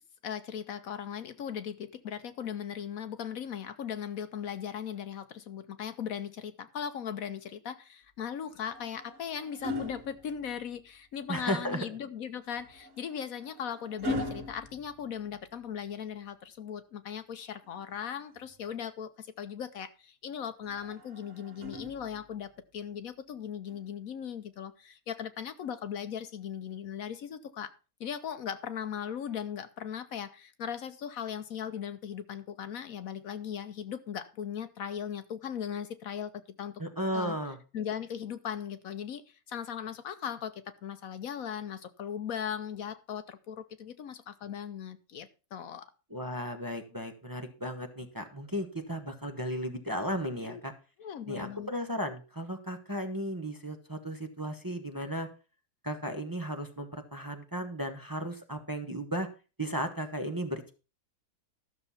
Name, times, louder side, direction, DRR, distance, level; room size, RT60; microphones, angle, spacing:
voice 1, 0.2-27.7 28.0-36.8 37.1-37.4 37.7-45.9 50.4-50.6 51.0-51.7, left 8 dB, 65° left, 1.1 m, -38 dB
sound 1, 8.5-11.0 12.5-15.7 17.5-18.7 20.6-22.5 23.7-23.9, left 2 dB, 55° right, 2.0 m, -41 dB
voice 2, 11.3-11.9 36.8-37.6 46.1-50.7 51.3-55.3 55.8-59.3 59.6-60.7, equal, 15° right, 1.0 m, -35 dB
13.0 x 6.6 x 5.6 m
omnidirectional pair, 1.7 m